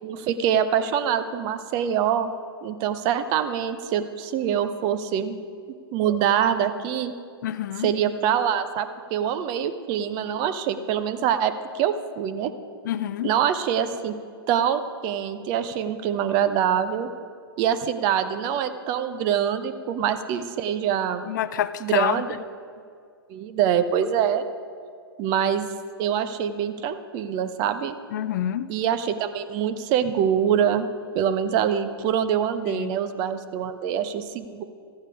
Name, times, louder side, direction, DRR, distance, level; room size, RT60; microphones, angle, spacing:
voice 1, 0.0-2.3 2.6-5.4 5.9-7.1 7.8-12.5 13.2-14.1 14.5-17.1 17.6-21.2 21.8-22.3 23.3-24.4 25.2-25.7 26.0-28.0 28.7-30.9 31.1-34.6, right 9 dB, 30° right, 11 dB, 0.6 m, -24 dB
voice 2, 7.4-7.9 12.9-13.3 21.3-22.2 28.1-28.7 32.7-32.9, left 11 dB, 50° left, 14 dB, 0.4 m, -27 dB
13.5 x 8.9 x 4.8 m, 2.2 s
figure-of-eight pair, 110°, 13 cm